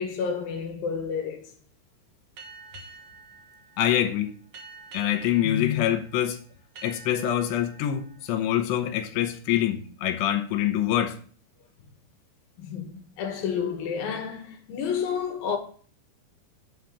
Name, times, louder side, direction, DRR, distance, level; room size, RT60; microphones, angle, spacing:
voice 1, 0.0-1.5 12.6-15.6, left 6 dB, 65° left, 2.9 m, -30 dB
sound 1, 2.4-9.6, right 5 dB, 60° right, 1.6 m, -49 dB
voice 2, 3.8-4.3 4.9-6.4 6.8-11.2, left 11 dB, 80° left, 3.2 m, -25 dB
7.4 x 5.8 x 7.1 m
omnidirectional pair, 5.1 m